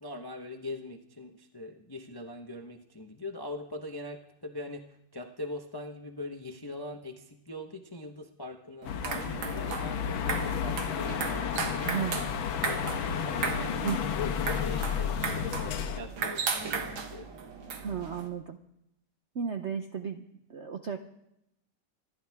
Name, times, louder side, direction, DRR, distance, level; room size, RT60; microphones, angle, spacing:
voice 1, 0.0-14.0 14.6-17.3, left 1 dB, 30° left, 4 dB, 0.4 m, -42 dB
sound 1, 8.8-16.0, left 7 dB, 85° left, 1.7 m, -32 dB
sound 2, 8.8-18.3, right 5 dB, 80° right, 2.2 m, -36 dB
voice 2, 11.8-12.2 13.8-14.0 17.8-18.6 19.3-20.2 20.5-21.0, right 7 dB, 60° right, 6 dB, 0.7 m, -33 dB
25.5 x 12.0 x 3.5 m, 0.80 s
omnidirectional pair, 2.2 m